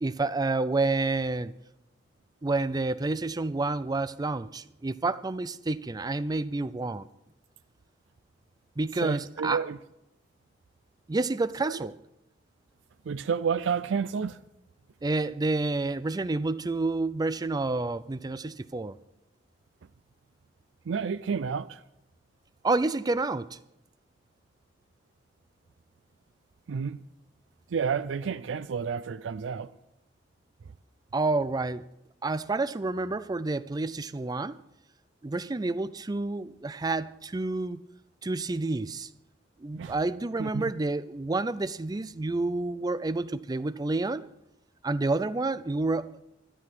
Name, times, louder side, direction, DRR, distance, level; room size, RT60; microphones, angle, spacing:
voice 1, 0.0-1.5 2.4-7.1 8.8-9.6 11.1-11.9 15.0-18.9 22.6-23.6 31.1-31.8 32.2-34.6 35.2-37.8 38.2-39.1 39.6-44.3 44.8-46.2, right 3 dB, 20° right, 0.4 m, -29 dB
voice 2, 9.0-9.8 11.6-11.8 13.0-14.4 20.8-21.8 26.7-27.0 27.7-29.8 30.6-30.7 39.7-40.0 40.4-40.7, right 6 dB, 85° right, 0.4 m, -30 dB
12.5 x 11.0 x 5.9 m
head